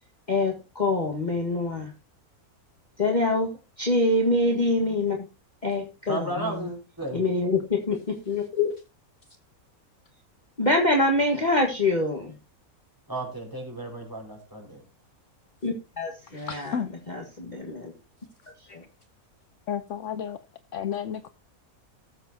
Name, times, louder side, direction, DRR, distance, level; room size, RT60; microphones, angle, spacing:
voice 1, 0.3-1.9 3.0-3.5 3.8-5.2 5.6-6.5 7.1-8.7 10.6-12.3 15.6-16.8 17.1-17.9, left 2 dB, 30° left, 1.6 m, -25 dB
voice 2, 6.1-7.2 13.1-14.8, right 2 dB, 15° right, 5.0 m, -34 dB
voice 3, 16.2-16.9 18.7-18.8 19.7-20.4 20.7-21.3, left 8 dB, 60° left, 1.0 m, -32 dB
18.5 x 7.4 x 2.7 m
omnidirectional pair, 1.6 m